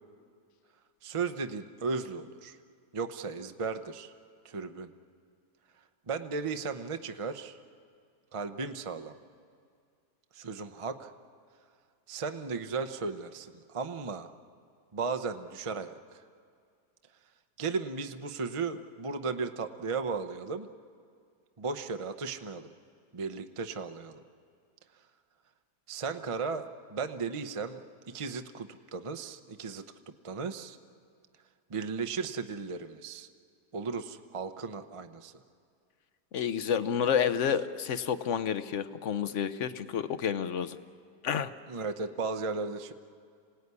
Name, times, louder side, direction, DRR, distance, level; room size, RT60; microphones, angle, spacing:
voice 1, 1.0-2.6 2.9-4.1 4.4-4.9 6.1-7.6 8.3-9.1 10.3-11.1 12.1-14.3 14.9-16.2 17.6-20.7 21.6-22.7 23.1-24.2 25.9-27.8 28.1-29.8 30.2-30.8 31.7-33.3 33.7-35.3 41.7-42.9, right 4 dB, 35° right, 8 dB, 0.5 m, -35 dB
voice 2, 36.3-40.8 41.2-41.5, left 8 dB, 55° left, 13 dB, 1.0 m, -29 dB
26.5 x 17.5 x 9.7 m, 2.2 s
omnidirectional pair, 1.8 m